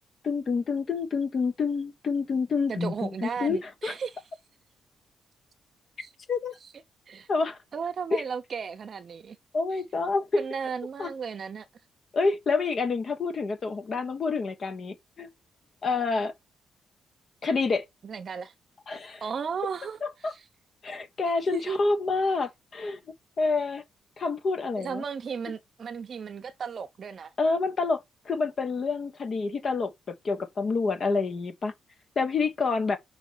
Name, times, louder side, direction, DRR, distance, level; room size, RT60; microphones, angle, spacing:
voice 1, 0.2-3.9 6.0-6.5 7.3-7.6 8.1-8.2 9.5-10.4 11.0-11.1 12.1-15.3 15.8-16.3 17.4-17.8 18.9-19.2 20.0-20.3 20.8-23.0 23.4-23.8 24.2-25.0 27.4-31.7 32.1-33.0, left 4 dB, 45° left, 1.3 m, -28 dB
voice 2, 2.7-4.2 6.0-6.1 7.1-7.3 7.7-9.4 10.3-11.7 18.0-18.5 19.2-20.4 21.5-21.8 24.8-27.3, right 6 dB, 50° right, 0.8 m, -35 dB
5.6 x 4.3 x 4.0 m
cardioid pair, 110°, 0 cm